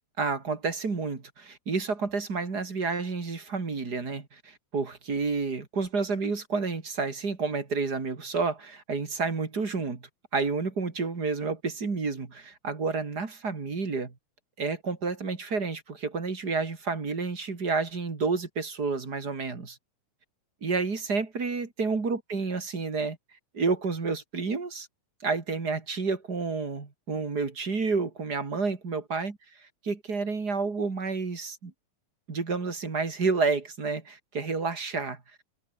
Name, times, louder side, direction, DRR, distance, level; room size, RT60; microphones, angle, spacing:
voice 1, 0.2-10.0 10.3-14.1 14.6-19.8 20.6-23.2 23.5-24.9 25.2-29.4 29.8-31.7 32.3-35.2, right 4 dB, 30° right, 3.1 m, -30 dB
omnidirectional pair, 3.8 m